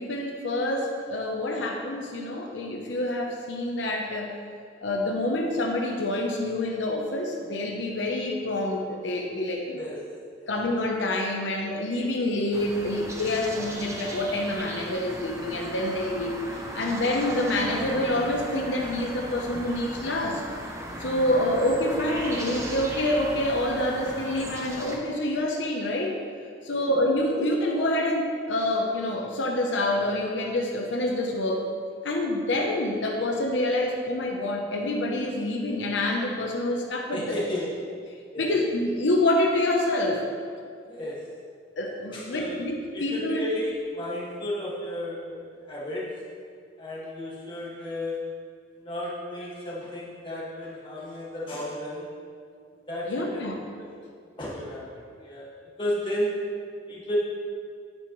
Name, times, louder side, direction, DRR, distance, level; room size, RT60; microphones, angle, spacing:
voice 1, 0.0-4.4 4.8-9.9 10.5-20.4 21.0-26.2 26.6-31.7 32.0-37.4 38.4-40.2 41.8-43.4 53.1-53.7, left 1 dB, 80° left, 0 dB, 0.9 m, -27 dB
sound 1, 12.5-25.0, right 1 dB, 15° right, 0.9 m, -37 dB
voice 2, 37.1-37.7 38.3-38.6 40.9-41.3 42.1-42.6 42.9-46.2 46.8-48.3 48.8-52.1 52.9-53.5 53.8-53.9 54.4-55.5 55.8-56.4 56.9-57.2, left 1 dB, 25° left, -6 dB, 2.0 m, -33 dB
9.5 x 8.9 x 3.2 m, 2.2 s
head